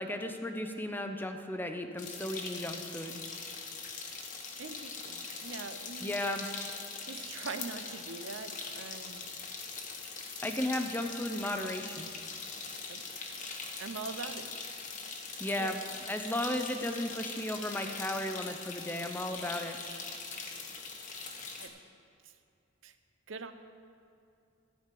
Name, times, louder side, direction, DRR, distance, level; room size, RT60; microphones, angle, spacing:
voice 1, 0.0-3.2 6.0-6.5 10.4-12.1 15.4-15.8 16.1-19.8, left 1 dB, 10° left, 6 dB, 0.6 m, -35 dB
sound 1, 2.0-21.7, left 4 dB, 40° left, 1.1 m, -42 dB
voice 2, 4.6-6.1 7.0-9.3 12.9-13.0 13.3-13.4 13.8-14.5 15.6-15.8 21.6-21.7 22.2-22.3 22.8-22.9 23.3-23.5, right 4 dB, 75° right, 9 dB, 0.6 m, -43 dB
13.5 x 5.2 x 7.5 m, 2.6 s
head